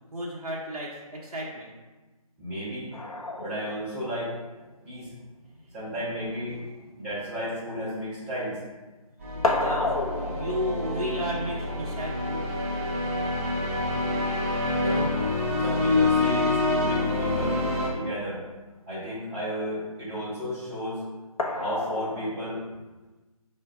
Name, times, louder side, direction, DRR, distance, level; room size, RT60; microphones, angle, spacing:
voice 1, 0.1-1.7 5.7-5.9 6.5-6.6 9.3-12.5, equal, 90° right, -4 dB, 0.9 m, -34 dB
voice 2, 2.4-2.9 3.4-4.3 4.8-5.1 5.7-6.6 7.0-8.6 14.8-15.1 15.6-17.6 17.9-18.4 18.9-21.0 21.5-22.6, equal, 5° right, -14 dB, 1.2 m, -33 dB
sound 1, 2.9-8.7 8.9-15.9 17.3-17.4 17.8-17.9 21.4-22.6, left 2 dB, 70° left, 0.7 m, -34 dB
sound 2, 9.2-17.9, left 2 dB, 20° right, 0.6 m, -27 dB
4.5 x 2.7 x 3.5 m, 1.2 s
figure-of-eight pair, 160°, 19 cm